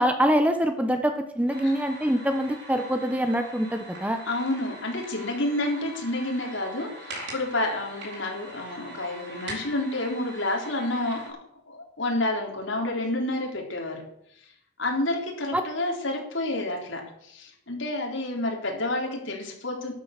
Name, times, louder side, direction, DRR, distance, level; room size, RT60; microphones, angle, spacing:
voice 1, 0.0-4.2 15.5-15.6, equal, 5° right, 7 dB, 0.9 m, -24 dB
sound 1, 1.5-11.3, right 1 dB, 60° right, 4.5 m, -42 dB
voice 2, 4.3-11.2 11.7-14.0 14.8-19.9, left 2 dB, 75° left, 1 dB, 3.8 m, -29 dB
12.5 x 9.6 x 6.7 m, 0.72 s
head